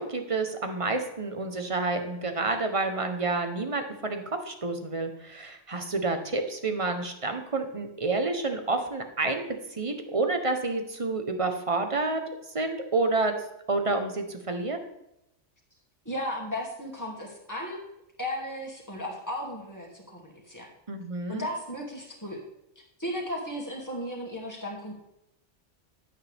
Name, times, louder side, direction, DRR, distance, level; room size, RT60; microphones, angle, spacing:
voice 1, 0.0-9.5 9.7-12.2 12.5-13.3 13.7-14.8 20.9-21.5, right 3 dB, 30° right, 6 dB, 1.1 m, -29 dB
voice 2, 16.0-17.8 18.2-20.7 21.3-22.4 23.0-24.9, equal, 15° left, -2 dB, 2.6 m, -35 dB
11.5 x 8.9 x 3.6 m, 0.84 s
omnidirectional pair, 1.3 m